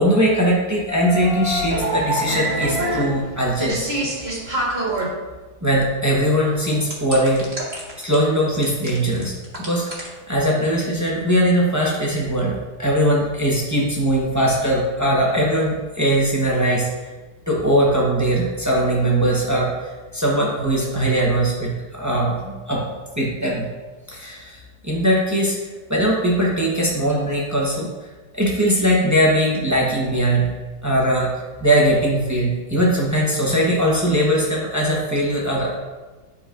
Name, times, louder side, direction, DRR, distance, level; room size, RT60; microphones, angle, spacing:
voice 1, 0.0-3.9 5.6-7.5 8.0-9.3 9.7-16.9 17.5-23.6 24.1-25.6 25.9-27.9 28.3-30.5 30.8-31.3 31.6-35.7, right 1 dB, 15° right, -4 dB, 0.6 m, -20 dB
sound 1, 0.9-5.1 6.9-8.2 8.6-10.1, right 1 dB, 35° right, 1.6 m, -25 dB
10.5 x 4.3 x 2.5 m, 1.3 s
omnidirectional pair, 2.1 m